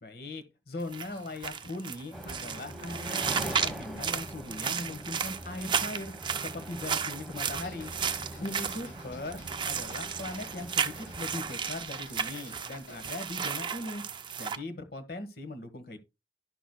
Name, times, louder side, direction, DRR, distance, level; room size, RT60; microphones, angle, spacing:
voice 1, 0.0-6.1 6.4-7.9 8.4-14.0 14.4-16.0, left 2 dB, 55° left, 1.3 m, -40 dB
sound 1, 0.8-14.6, right 7 dB, 25° right, 0.4 m, -34 dB
sound 2, 2.1-11.5, right 1 dB, ahead, 1.2 m, -43 dB
sound 3, 7.5-13.6, left 2 dB, 90° left, 2.1 m, -54 dB
11.0 x 6.0 x 2.3 m
head